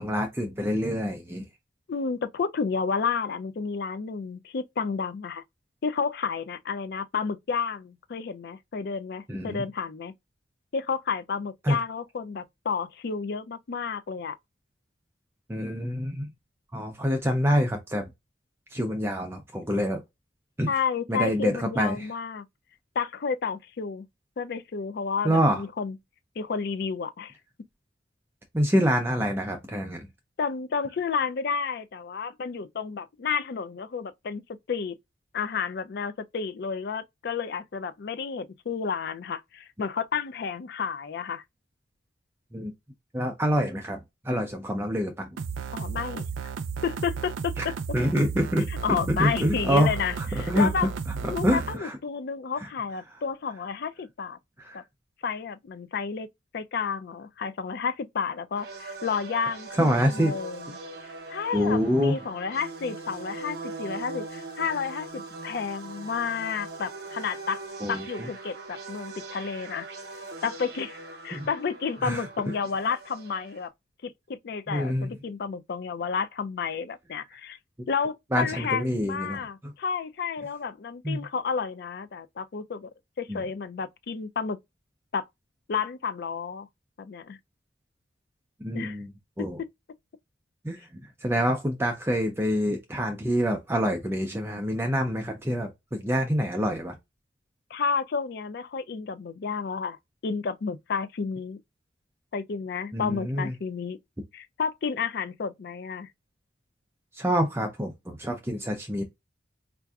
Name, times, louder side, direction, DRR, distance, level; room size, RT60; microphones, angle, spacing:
voice 1, 0.0-1.4 9.3-9.6 11.6-11.8 15.5-16.3 16.7-18.0 18.7-20.0 20.6-20.7 21.1-22.1 25.2-25.6 28.5-30.1 42.5-42.7 43.1-45.3 47.6-47.7 47.9-50.7 51.4-52.0 52.6-52.7 54.6-54.8 59.8-60.4 61.5-62.1 67.8-68.3 71.3-71.5 72.0-72.5 74.7-75.1 78.3-79.7 81.0-81.3 83.3-83.4 88.6-89.1 89.4-89.6 90.6-90.9 91.2-97.0 102.9-103.6 107.1-109.0, equal, 10° right, 0.4 m, -26 dB
voice 2, 1.9-5.4 5.8-10.1 10.7-14.4 20.7-22.5 23.0-24.1 24.4-26.0 26.4-27.3 30.4-34.4 34.7-35.0 35.3-41.4 45.7-46.2 46.8-47.7 48.7-50.9 51.3-54.4 54.7-54.8 55.2-56.3 56.5-60.7 61.3-67.6 67.9-69.9 70.4-71.0 71.2-73.7 74.0-77.6 77.9-82.9 83.2-84.6 85.1-85.3 85.7-86.7 87.0-87.4 88.7-89.0 89.4-89.5 97.7-100.0 100.2-101.6 102.3-104.0 104.3-106.1, left 5 dB, 55° left, 0.4 m, -31 dB
sound 1, 45.4-51.8, right 5 dB, 85° right, 0.4 m, -33 dB
sound 2, 58.5-73.7, right 3 dB, 55° right, 0.7 m, -41 dB
4.5 x 2.5 x 2.3 m
head